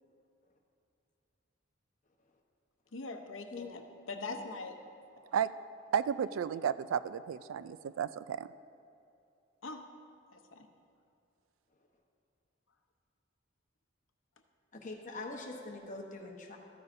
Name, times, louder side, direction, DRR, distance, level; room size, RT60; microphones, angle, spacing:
voice 1, 2.9-3.8 4.1-4.7 9.6-9.8 10.3-10.7, left 3 dB, 75° left, 5 dB, 0.8 m, -42 dB
voice 2, 5.9-8.5, right 8 dB, 85° right, 15 dB, 0.3 m, -33 dB
voice 3, 14.7-16.6, left 3 dB, 40° left, 1 dB, 1.0 m, -43 dB
13.5 x 9.4 x 2.6 m, 2.6 s
head